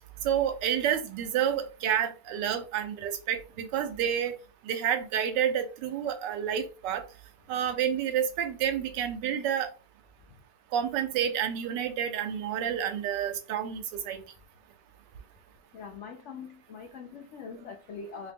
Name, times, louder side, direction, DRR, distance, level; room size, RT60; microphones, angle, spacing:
voice 1, 0.2-4.4 4.6-7.0 7.5-9.7 10.7-14.2, right 9 dB, 80° right, 9 dB, 1.3 m, -29 dB
voice 2, 15.7-18.3, left 5 dB, 90° left, 2 dB, 0.6 m, -43 dB
3.0 x 2.9 x 3.5 m, 0.34 s
omnidirectional pair, 1.9 m